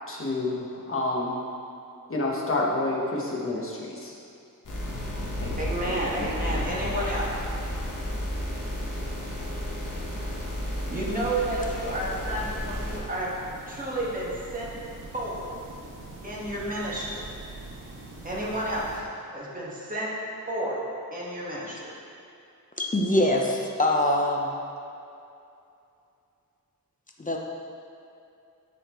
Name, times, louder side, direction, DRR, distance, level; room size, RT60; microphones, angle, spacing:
voice 1, 0.1-1.4 2.1-4.1 5.4-5.5, left 2 dB, 40° left, -3 dB, 1.2 m, -29 dB
sound 1, 4.6-13.0, left 1 dB, 60° left, 1.3 m, -32 dB
voice 2, 5.6-7.3 10.9-13.3 13.7-14.7 15.1-15.5 16.2-17.3 18.2-19.0 19.3-20.1 20.5-20.8 21.1-21.8, right 1 dB, 25° right, -6 dB, 1.5 m, -31 dB
sound 2, 6.9-19.0, right 2 dB, 65° right, 1.2 m, -43 dB
voice 3, 22.8-24.5 27.2-27.4, left 1 dB, 25° left, 0 dB, 0.7 m, -23 dB
9.9 x 4.2 x 3.1 m, 2.6 s
wide cardioid pair, 90°, 35 cm